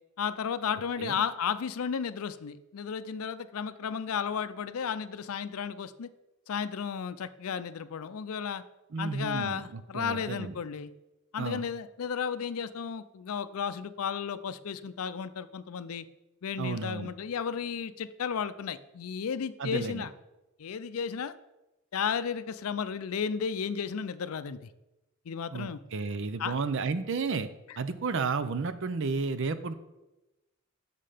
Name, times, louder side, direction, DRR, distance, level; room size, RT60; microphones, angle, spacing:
voice 1, 0.2-6.1 6.5-8.6 9.0-10.9 11.3-16.0 16.4-20.1 20.6-21.3 21.9-24.7 25.3-25.8 26.4-26.5, left 7 dB, 80° left, 13 dB, 0.5 m, -33 dB
voice 2, 8.9-10.5 11.4-11.7 16.6-17.1 19.6-20.1 25.5-27.5 27.8-29.7, right 4 dB, 60° right, 12 dB, 0.5 m, -32 dB
7.6 x 6.6 x 5.0 m, 1.0 s
head